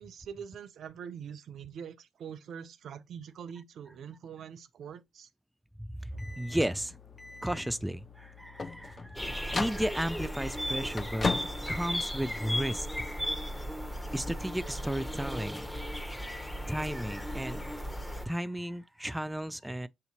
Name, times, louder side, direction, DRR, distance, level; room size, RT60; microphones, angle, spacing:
voice 1, 0.0-5.3, right 7 dB, 65° right, 0.4 m, -44 dB
voice 2, 5.8-7.0 7.4-11.3 11.7-13.1 14.1-15.7 16.7-17.6 18.2-19.9, right 1 dB, 10° right, 0.3 m, -34 dB
sound 1, 6.1-12.6, left 4 dB, 35° left, 0.6 m, -38 dB
sound 2, 9.2-18.3, equal, 10° left, 0.8 m, -36 dB
6.5 x 2.8 x 2.8 m
supercardioid pair, 55°, 0 cm